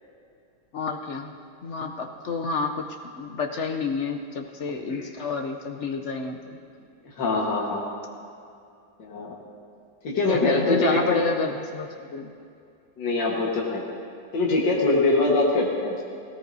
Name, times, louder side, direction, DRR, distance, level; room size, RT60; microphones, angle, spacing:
voice 1, 0.7-1.3 1.6-2.9 3.2-6.4 10.3-12.3, left 4 dB, 60° left, 3 dB, 0.8 m, -29 dB
voice 2, 7.2-7.8 9.0-9.3 10.0-11.2 13.0-13.8 14.3-15.9, left 2 dB, 85° left, -4 dB, 2.1 m, -23 dB
18.5 x 17.0 x 2.7 m, 2.4 s
omnidirectional pair, 1.9 m